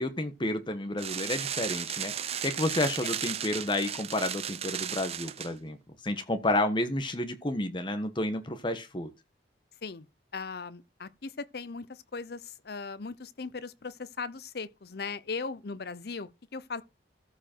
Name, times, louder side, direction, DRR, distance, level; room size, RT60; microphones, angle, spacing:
voice 1, 0.0-2.1 2.4-5.8 6.0-9.1, left 1 dB, 25° left, 1.3 m, -30 dB
sound 1, 1.0-5.5, right 9 dB, 35° right, 0.6 m, -35 dB
voice 2, 10.3-16.8, left 4 dB, 60° left, 0.7 m, -38 dB
14.0 x 5.0 x 4.6 m
head